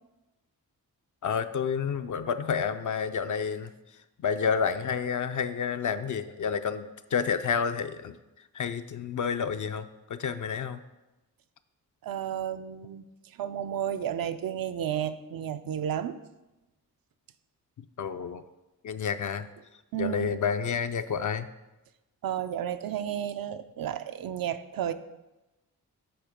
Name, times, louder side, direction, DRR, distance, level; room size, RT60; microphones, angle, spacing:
voice 1, 1.2-3.7 4.2-8.2 8.5-10.8 18.0-18.4 18.8-19.5 20.0-21.5, left 6 dB, 55° left, 9 dB, 0.5 m, -29 dB
voice 2, 12.0-13.0 13.4-16.2 19.9-20.4 22.2-24.9, right 10 dB, 70° right, 11 dB, 0.5 m, -32 dB
7.8 x 4.4 x 5.0 m, 1.0 s
cardioid pair, 55°, 36 cm